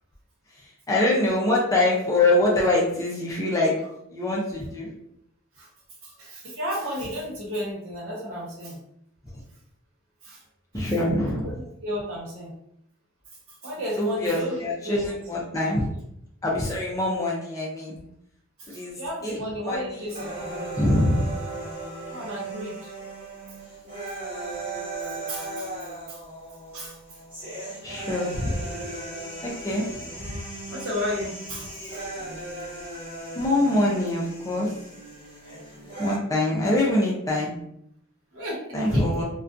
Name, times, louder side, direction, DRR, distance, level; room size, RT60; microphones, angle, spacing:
voice 1, 0.6-3.8 4.1-4.9 10.7-11.5 14.0-15.9 16.4-18.0 18.7-19.4 19.6-20.0 20.7-21.3 27.8-28.5 29.4-29.9 30.2-30.4 33.4-34.7 36.0-37.5 38.7-39.2, left 1 dB, 15° left, -4 dB, 0.4 m, -24 dB
voice 2, 6.0-8.8 10.2-10.4 10.8-10.9 11.6-12.5 13.5-15.2 18.6-20.8 22.1-22.9 25.3-25.7 26.1-26.2 26.7-27.0 30.7-32.0 38.3-39.0, equal, 65° right, -4 dB, 1.0 m, -33 dB
sound 1, 20.2-36.2, right 2 dB, 25° right, 1.2 m, -37 dB
2.5 x 2.2 x 2.4 m, 0.74 s
head